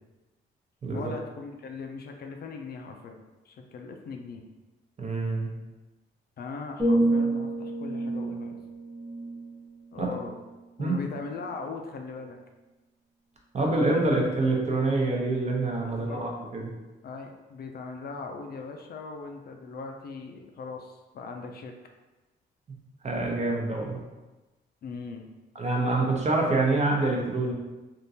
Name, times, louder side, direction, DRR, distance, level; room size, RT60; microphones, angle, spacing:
voice 1, 0.9-3.2 3.4-4.4 6.4-8.6 9.9-10.4 10.8-12.4 15.8-16.2 17.0-21.7 24.8-25.3, left 4 dB, 50° left, 3 dB, 0.4 m, -39 dB
voice 2, 5.0-5.5 10.0-10.1 10.8-11.0 13.5-16.7 23.0-24.0 25.6-27.5, right 2 dB, 35° right, -1 dB, 0.8 m, -26 dB
sound 1, 6.8-10.7 11.2-11.5, right 2 dB, 5° left, 0.9 m, -29 dB
3.6 x 2.5 x 2.7 m, 1.1 s
cardioid pair, 90°, 20 cm